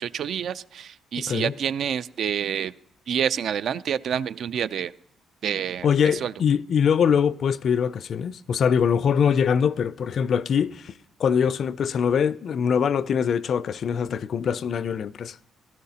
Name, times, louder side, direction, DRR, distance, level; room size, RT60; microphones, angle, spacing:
voice 1, 0.0-2.7 3.1-4.9 5.4-6.3, right 8 dB, 65° right, 0.4 m, -28 dB
voice 2, 5.8-10.9 11.2-15.4, left 7 dB, 60° left, 0.4 m, -23 dB
16.5 x 12.5 x 2.8 m
cardioid pair, 90°, 0 cm